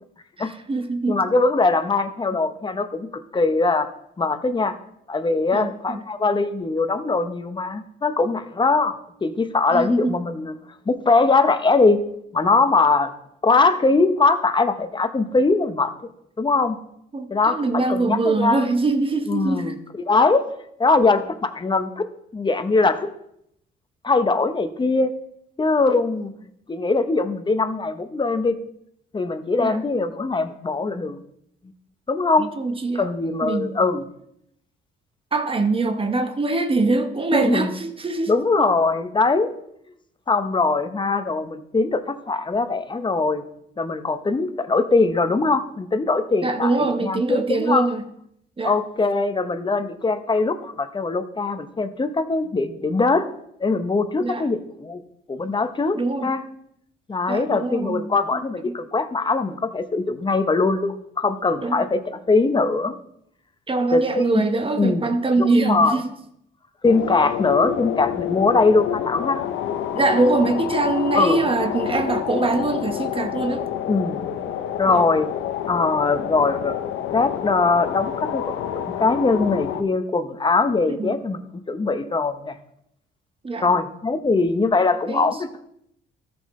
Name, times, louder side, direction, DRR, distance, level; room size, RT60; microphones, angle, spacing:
voice 1, 0.4-1.2 5.5-6.0 9.7-10.2 17.1-19.8 29.6-29.8 32.4-33.1 33.4-33.8 35.3-38.3 38.6-38.7 46.4-48.0 48.6-48.7 54.2-54.4 55.9-56.3 57.3-58.7 61.6-61.8 63.7-66.1 67.6-67.8 69.9-73.7 74.9-75.0 80.9-81.2 83.4-83.7 85.1-85.3, right 3 dB, 25° right, 0.9 m, -23 dB
voice 2, 1.1-3.9 4.2-4.8 5.1-10.5 10.9-12.0 12.3-13.1 13.4-15.9 16.4-16.8 17.3-18.7 19.3-20.5 20.8-23.1 24.0-25.1 25.6-26.3 26.7-28.5 29.1-31.2 32.1-32.5 32.9-34.0 37.3-37.7 38.3-39.5 40.3-43.4 43.8-47.9 48.6-53.3 53.6-55.0 55.3-56.4 57.1-63.0 63.9-64.4 64.8-65.1 65.4-66.0 66.8-69.4 71.1-71.4 73.9-74.2 74.8-75.3 75.7-76.8 77.1-81.4 81.7-82.6 83.6-85.6, left 3 dB, 25° left, 0.8 m, -21 dB
sound 1, 66.8-79.8, left 10 dB, 85° left, 0.7 m, -28 dB
13.5 x 6.2 x 3.2 m
cardioid pair, 90°, 20 cm